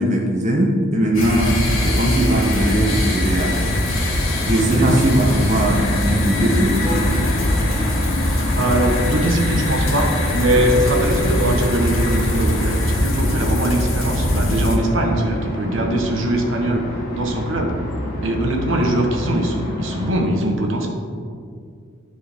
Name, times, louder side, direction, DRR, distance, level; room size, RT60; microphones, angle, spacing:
voice 1, 0.0-3.6 4.5-7.3, right 1 dB, 35° right, -2 dB, 0.9 m, -19 dB
sound 1, 1.1-14.8, left 1 dB, 90° left, 1.9 m, -22 dB
sound 2, 1.7-20.1, left 1 dB, 40° left, 1.6 m, -29 dB
voice 2, 4.5-5.1 8.6-17.9 18.2-20.9, right 1 dB, 65° right, 2 dB, 1.1 m, -21 dB
13.0 x 4.7 x 3.5 m, 2.2 s
head